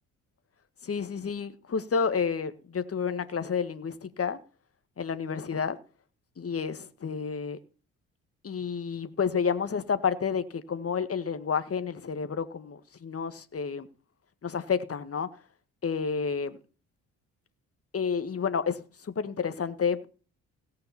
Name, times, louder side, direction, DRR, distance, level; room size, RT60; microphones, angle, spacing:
voice 1, 0.8-4.4 5.0-5.8 6.4-7.6 8.4-13.9 14.4-15.3 15.8-16.6 17.9-18.8 19.2-20.1, left 6 dB, 40° left, 1.8 m, -30 dB
17.5 x 5.8 x 7.0 m
hypercardioid pair, 50°, 36 cm